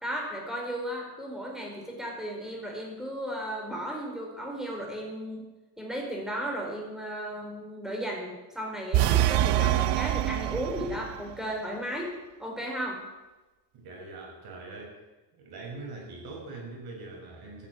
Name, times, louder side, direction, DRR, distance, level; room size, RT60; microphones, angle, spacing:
voice 1, 0.0-5.4 5.8-12.1 12.4-13.0, equal, ahead, 0 dB, 4.6 m, -35 dB
sound 1, 8.9-11.2, right 13 dB, 90° right, 0.7 m, -25 dB
voice 2, 13.7-15.0 15.3-17.7, right 3 dB, 65° right, 1 dB, 6.2 m, -42 dB
14.5 x 9.8 x 9.4 m, 1.1 s
cardioid pair, 140°, 40 cm